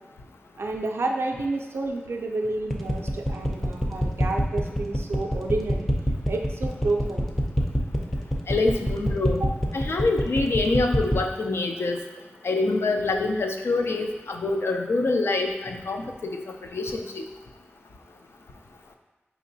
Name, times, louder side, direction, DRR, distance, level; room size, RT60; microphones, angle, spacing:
voice 1, 0.6-5.9 6.3-7.3 9.4-9.5, right 2 dB, 70° right, 2 dB, 0.4 m, -30 dB
sound 1, 2.7-11.2, equal, 5° left, 0.4 m, -25 dB
voice 2, 8.5-9.4 9.7-12.0 12.4-16.4 16.7-17.2, left 3 dB, 70° left, 4 dB, 0.4 m, -25 dB
5.0 x 2.9 x 2.6 m, 1.2 s
wide cardioid pair, 95°, 4 cm